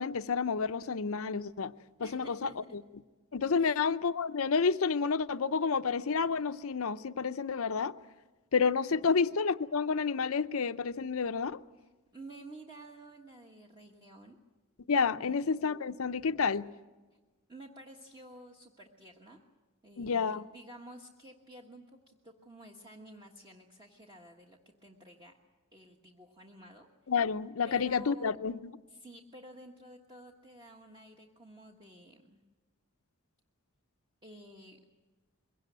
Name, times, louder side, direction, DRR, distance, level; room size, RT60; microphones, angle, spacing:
voice 1, 0.0-1.7 2.0-2.8 3.3-8.0 8.5-11.6 14.9-16.7 20.0-20.5 27.1-28.7, left 5 dB, 70° left, 0.6 m, -30 dB
voice 2, 2.0-2.7 3.6-3.9 8.9-9.2 11.8-14.4 15.2-15.5 17.5-19.4 19.8-25.4 25.7-26.9 27.6-28.3 28.9-32.4 34.2-34.8, right 1 dB, 20° right, 1.3 m, -52 dB
22.5 x 17.0 x 9.4 m
head